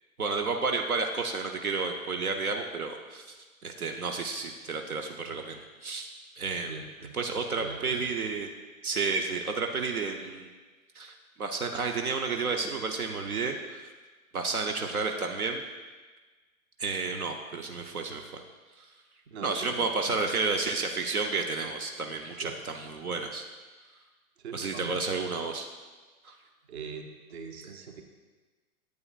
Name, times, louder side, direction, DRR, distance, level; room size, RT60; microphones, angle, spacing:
voice 1, 0.2-6.1 6.4-6.8 7.1-8.5 8.8-10.5 10.9-13.9 14.3-15.6 16.8-18.4 18.8-18.9 19.4-23.4 24.5-25.7 26.2-26.3, right 4 dB, 80° right, 4 dB, 0.8 m, -31 dB
voice 2, 6.7-8.1 19.3-20.2 22.4-22.6 24.4-24.9 26.7-28.0, right 5 dB, 50° right, 5 dB, 1.0 m, -42 dB
9.4 x 8.4 x 2.4 m, 1.3 s
figure-of-eight pair, 115°, 43 cm